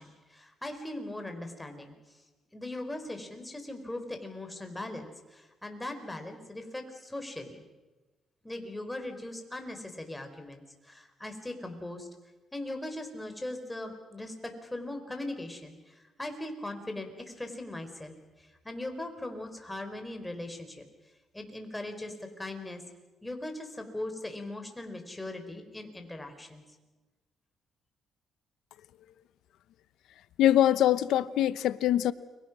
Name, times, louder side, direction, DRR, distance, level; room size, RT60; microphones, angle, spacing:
voice 1, 0.0-1.9 2.5-7.6 8.4-12.1 12.5-20.8 21.3-22.8 23.2-26.6, left 1 dB, 10° left, 5 dB, 4.7 m, -40 dB
voice 2, 30.4-32.1, left 12 dB, 80° left, 15 dB, 0.8 m, -23 dB
30.0 x 24.0 x 6.2 m, 1.2 s
cardioid pair, 90°, 0 cm